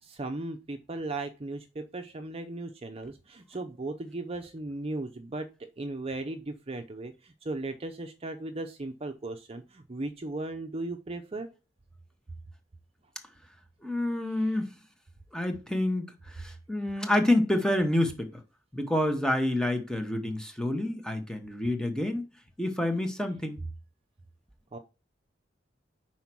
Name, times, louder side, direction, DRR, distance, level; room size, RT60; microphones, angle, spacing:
voice 1, 0.0-11.5 24.7-24.8, right 2 dB, 30° right, 0.6 m, -37 dB
voice 2, 13.8-14.7 15.3-18.4 18.7-22.2 22.6-23.6, left 1 dB, 5° left, 1.0 m, -28 dB
5.5 x 4.4 x 6.0 m
head